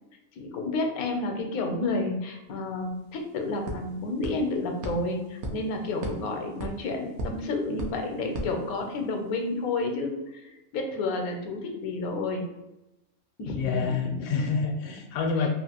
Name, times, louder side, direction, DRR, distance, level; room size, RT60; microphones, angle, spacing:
voice 1, 0.4-12.4 13.4-14.3 15.4-15.5, left 2 dB, 80° left, 3 dB, 1.0 m, -30 dB
sound 1, 2.5-2.6 2.9-9.3, right 1 dB, 60° right, 0.8 m, -39 dB
voice 2, 13.5-15.5, left 5 dB, 65° left, 2 dB, 0.7 m, -27 dB
3.0 x 2.5 x 2.8 m, 0.96 s
omnidirectional pair, 1.5 m